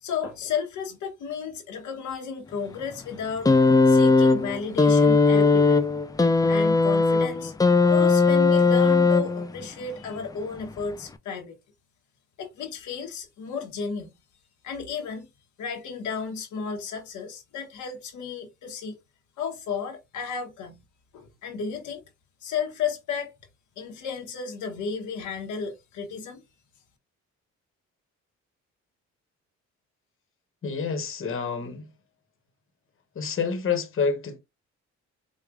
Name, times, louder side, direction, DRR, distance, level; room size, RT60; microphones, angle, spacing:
voice 1, 0.0-3.6 3.9-5.9 6.5-11.5 12.4-14.1 14.6-15.3 15.6-19.0 19.4-20.8 21.1-22.0 22.4-23.3 23.8-26.4, left 6 dB, 80° left, 1.0 m, -33 dB
sound 1, 3.4-9.6 10.7-10.8, left 4 dB, 15° left, 0.3 m, -19 dB
voice 2, 30.6-31.9 33.1-34.4, left 5 dB, 45° left, 1.1 m, -28 dB
4.8 x 2.3 x 2.4 m
cardioid pair, 90°, 30 cm